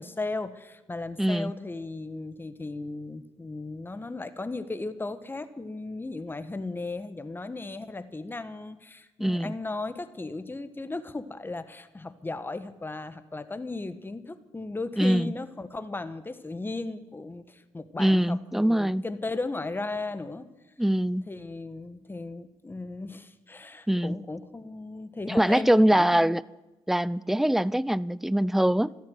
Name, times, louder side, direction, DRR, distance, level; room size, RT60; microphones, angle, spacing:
voice 1, 0.0-20.5 21.3-26.4, left 3 dB, 20° left, 1.3 m, -36 dB
voice 2, 1.2-1.5 9.2-9.5 15.0-15.3 18.0-19.0 20.8-21.3 23.9-24.2 25.3-26.4 26.9-28.9, right 1 dB, 5° right, 0.4 m, -23 dB
13.5 x 13.0 x 7.9 m
cardioid pair, 75°, 11 cm